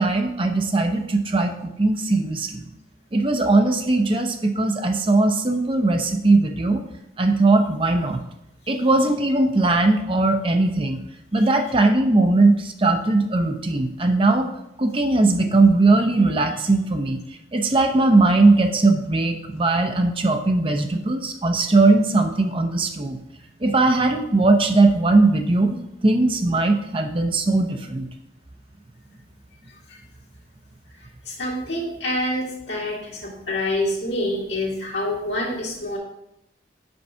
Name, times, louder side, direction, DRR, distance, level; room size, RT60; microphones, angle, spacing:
voice 1, 0.0-2.7 3.1-6.8 7.2-8.2 8.7-11.0 11.3-14.5 14.8-17.2 17.5-23.2 23.6-28.1, right 2 dB, 30° right, 5 dB, 0.6 m, -19 dB
voice 2, 31.3-36.0, left 1 dB, 75° left, -3 dB, 2.0 m, -27 dB
5.3 x 4.6 x 5.5 m, 0.83 s
head